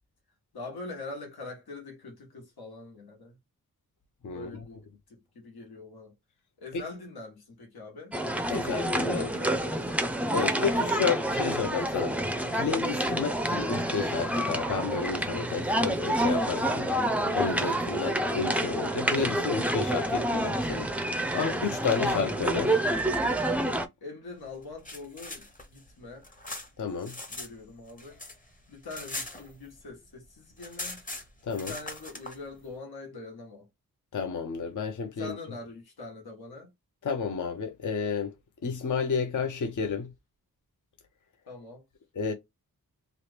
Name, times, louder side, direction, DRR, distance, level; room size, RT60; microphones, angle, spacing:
voice 1, 0.5-3.4 4.3-6.2 6.6-8.2 9.1-9.9 10.5-11.9 24.0-26.2 27.3-28.2 28.7-31.0 31.5-33.7 35.2-36.7 41.5-41.8, left 3 dB, 85° left, 1.3 m, -43 dB
voice 2, 4.2-4.6 6.7-6.8 8.5-9.3 10.3-17.0 17.3-20.9 21.3-22.8 26.8-27.2 31.4-31.7 34.1-35.4 37.0-38.3 38.6-40.1 42.2-42.3, left 5 dB, 55° left, 0.6 m, -31 dB
sound 1, 8.1-23.9, right 1 dB, 5° right, 0.4 m, -28 dB
sound 2, 24.6-27.5 27.8-30.0 30.2-30.3 30.5-32.4, left 2 dB, 20° left, 0.8 m, -40 dB
3.0 x 2.4 x 3.3 m
wide cardioid pair, 85°, 36 cm